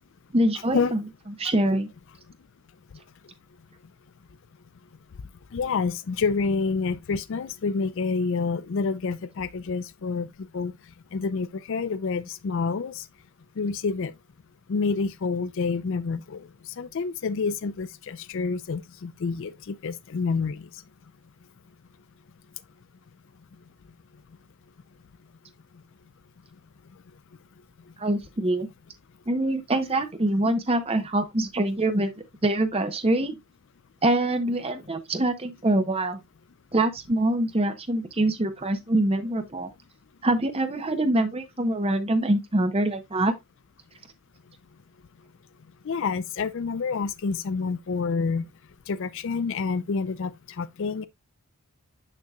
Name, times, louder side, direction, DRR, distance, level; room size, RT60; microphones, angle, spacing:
voice 1, 0.3-1.0 1.4-1.9 28.0-28.7 29.3-32.1 32.4-33.4 34.0-36.2 36.7-39.7 40.2-43.3, right 1 dB, 25° right, 0.7 m, -24 dB
voice 2, 5.5-10.3 10.5-10.7 11.1-13.0 13.6-14.1 14.7-16.5 16.8-20.7 45.9-48.4 48.9-50.3 50.6-51.1, left 4 dB, 55° left, 0.4 m, -28 dB
6.6 x 6.3 x 2.3 m
head